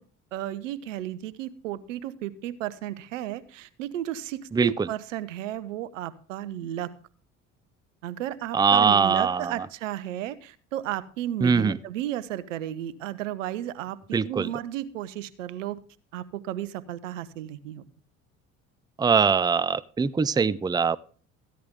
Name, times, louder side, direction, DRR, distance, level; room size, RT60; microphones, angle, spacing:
voice 1, 0.3-6.9 8.0-15.8 16.1-17.8, right 12 dB, 85° right, 15 dB, 0.9 m, -33 dB
voice 2, 4.5-4.9 8.5-9.5 11.4-11.8 14.1-14.5 19.0-21.0, right 5 dB, 10° right, 22 dB, 0.5 m, -22 dB
14.5 x 10.5 x 3.6 m, 0.40 s
hypercardioid pair, 60°, 37 cm